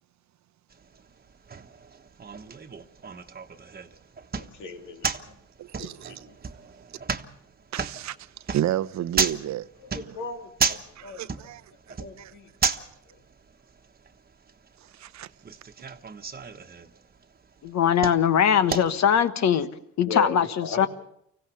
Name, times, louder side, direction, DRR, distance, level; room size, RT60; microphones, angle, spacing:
sound 1, 0.7-19.3, right 5 dB, 30° right, 1.3 m, -34 dB
voice 1, 4.4-5.3 5.8-6.4 9.9-11.3 12.0-12.5 20.0-20.4 20.6-20.9, left 4 dB, 80° left, 2.7 m, -37 dB
voice 2, 5.6-6.3 7.7-8.2 8.5-9.7 10.1-10.2 11.0-11.6 11.9-12.3 15.0-15.3, right 12 dB, 65° right, 0.8 m, -31 dB
voice 3, 17.6-19.7 20.0-20.9, left 8 dB, 65° left, 1.4 m, -21 dB
25.0 x 16.0 x 6.9 m
cardioid pair, 90°, 30 cm